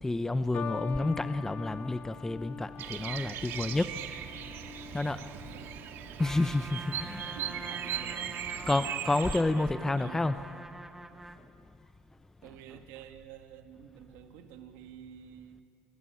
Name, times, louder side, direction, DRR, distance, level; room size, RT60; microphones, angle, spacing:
voice 1, 0.0-3.9 4.9-5.2 6.2-7.4 8.7-10.3, left 2 dB, 10° left, 0.8 m, -29 dB
sound 1, 0.5-7.1 7.9-8.3, left 7 dB, 50° left, 1.5 m, -44 dB
Bird vocalization bird call bird song, 2.8-9.4, right 10 dB, 65° right, 1.7 m, -39 dB
voice 2, 5.1-5.7 7.4-8.4 8.7-8.9 9.4-10.4 12.4-15.6, right 9 dB, 85° right, 2.0 m, -49 dB
Trumpet, 6.2-11.5, right 1 dB, 10° right, 1.5 m, -45 dB
26.5 x 22.5 x 8.8 m
cardioid pair, 105°, 4 cm